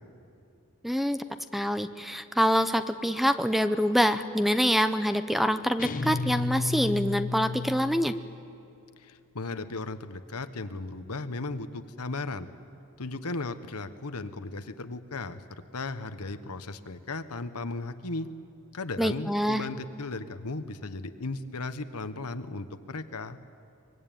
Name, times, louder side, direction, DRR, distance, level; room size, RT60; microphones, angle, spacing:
voice 1, 0.8-1.2 1.5-8.1 19.0-19.6, equal, ahead, 11 dB, 0.7 m, -25 dB
sound 1, 5.8-8.4, left 3 dB, 40° left, 1.0 m, -32 dB
voice 2, 9.0-12.5 13.0-15.4 15.7-18.3 18.7-23.4, left 3 dB, 80° left, 10 dB, 1.2 m, -36 dB
24.0 x 23.0 x 9.2 m, 2.7 s
head